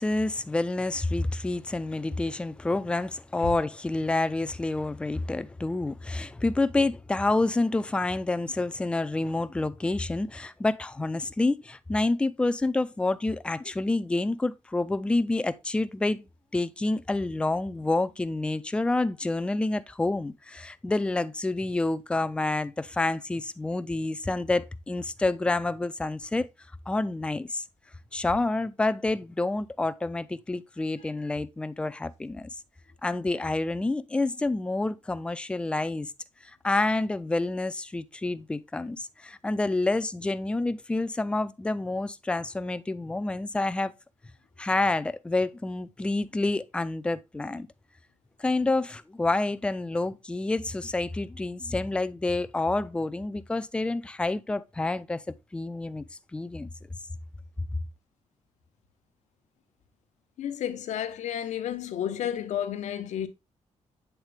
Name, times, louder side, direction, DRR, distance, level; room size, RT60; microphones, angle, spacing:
voice 1, 0.0-16.2 16.5-26.5 26.9-27.6 28.1-32.5 33.0-36.1 36.6-43.9 44.6-47.7 48.4-55.2 55.5-56.0 56.3-56.7, left 2 dB, 10° left, 0.3 m, -28 dB
voice 2, 60.4-63.3, left 10 dB, 85° left, 0.8 m, -31 dB
8.0 x 4.0 x 3.3 m
wide cardioid pair, 170°, 12 cm